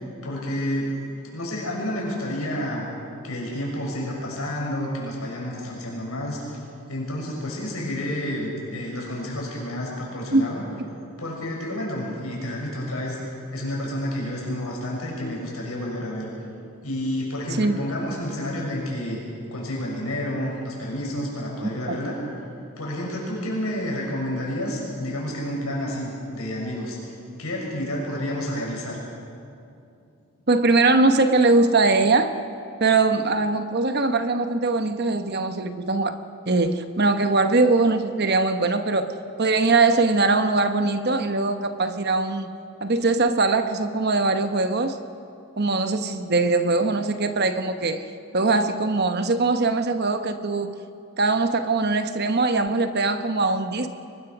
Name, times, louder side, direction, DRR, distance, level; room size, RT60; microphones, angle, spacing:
voice 1, 0.2-1.0 1.3-2.9 3.2-6.6 6.9-10.6 11.2-13.2 13.5-16.3 16.8-19.3 19.5-22.2 22.8-27.1 27.4-29.0, left 1 dB, 75° left, -2 dB, 6.7 m, -30 dB
voice 2, 30.5-32.3 32.8-36.2 36.5-42.5 42.8-45.0 45.6-48.1 48.3-50.7 51.2-53.9, right 3 dB, 45° right, 9 dB, 1.0 m, -21 dB
23.0 x 21.0 x 6.1 m, 2.5 s
head